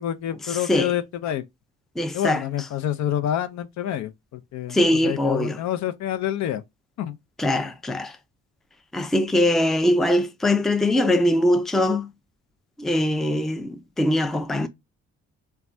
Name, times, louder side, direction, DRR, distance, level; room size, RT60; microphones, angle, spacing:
voice 1, 0.0-1.4 2.1-6.6 7.0-7.2, left 11 dB, 65° left, 0.5 m, -28 dB
voice 2, 2.0-2.4 4.7-5.6 7.4-8.1 8.9-12.1 12.8-14.7, left 1 dB, ahead, 0.4 m, -22 dB
3.1 x 2.2 x 2.4 m
cardioid pair, 90°, 30 cm